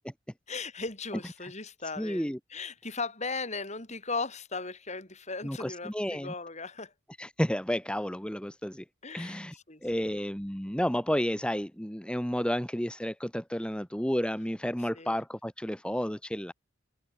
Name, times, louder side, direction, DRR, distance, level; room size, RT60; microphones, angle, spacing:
voice 1, 0.5-6.9 9.0-9.4 9.7-10.2 14.9-15.2, left 4 dB, 35° left, 5.7 m, -37 dB
voice 2, 2.0-2.4 5.4-6.3 7.2-8.9 9.1-16.5, equal, 5° left, 1.7 m, -31 dB
head